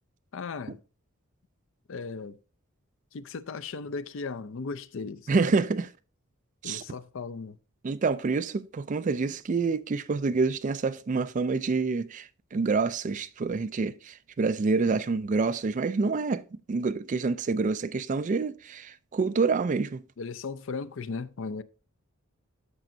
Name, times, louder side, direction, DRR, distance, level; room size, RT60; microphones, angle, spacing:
voice 1, 0.3-0.8 1.9-2.4 3.1-5.5 6.6-7.6 20.2-21.6, left 4 dB, 60° left, 0.5 m, -36 dB
voice 2, 5.3-5.9 6.6-6.8 7.8-16.4 16.7-20.0, right 4 dB, 35° right, 0.3 m, -27 dB
13.5 x 5.2 x 2.7 m
head